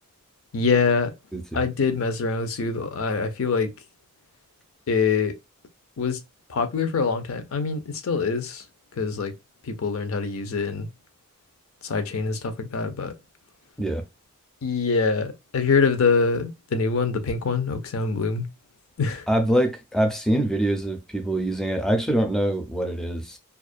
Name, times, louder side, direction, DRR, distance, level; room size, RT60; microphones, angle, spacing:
voice 1, 0.5-1.1 1.5-3.7 4.9-5.3 6.0-6.2 6.5-8.6 9.0-9.3 9.6-10.9 11.8-13.1 14.6-18.5 19.0-19.3, left 4 dB, 70° left, 0.5 m, -24 dB
voice 2, 1.3-1.7 13.8-14.0 19.3-23.4, right 1 dB, ahead, 0.4 m, -24 dB
2.4 x 2.1 x 2.4 m
head